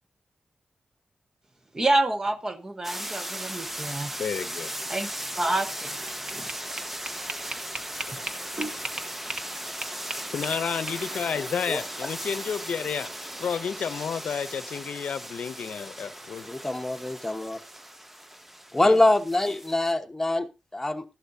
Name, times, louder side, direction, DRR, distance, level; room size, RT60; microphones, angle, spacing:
voice 1, 1.7-4.1 4.9-5.1 5.3-6.5 8.5-8.7, right 2 dB, 25° right, 1.0 m, -28 dB
sound 1, 2.8-19.9, right 1 dB, 10° right, 0.6 m, -37 dB
sound 2, 3.6-9.9, right 1 dB, 70° right, 7.9 m, -57 dB
voice 2, 4.2-4.7 10.3-13.1 13.4-16.4 18.8-19.0, left 7 dB, 85° left, 0.6 m, -31 dB
sound 3, 5.9-9.5 9.8-11.3, right 2 dB, 45° right, 1.4 m, -36 dB
voice 3, 11.4-11.8 16.4-17.6 18.7-21.0, left 2 dB, 15° left, 1.1 m, -25 dB
15.5 x 11.5 x 2.7 m
wide cardioid pair, 90°, 2 cm